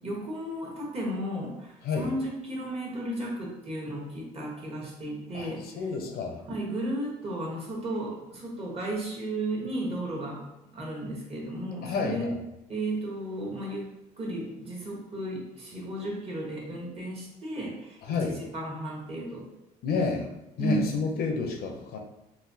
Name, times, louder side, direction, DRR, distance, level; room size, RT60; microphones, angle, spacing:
voice 1, 0.0-5.8 6.5-10.4 10.7-12.3 12.7-13.9 14.2-19.5 19.9-20.0 20.6-20.9, right 1 dB, 35° right, -2 dB, 1.1 m, -34 dB
voice 2, 5.3-6.4 11.8-12.4 18.1-18.4 19.8-20.3 20.6-22.0, left 4 dB, 65° left, 3 dB, 0.6 m, -30 dB
4.0 x 2.3 x 2.7 m, 0.90 s
cardioid pair, 110°, 17 cm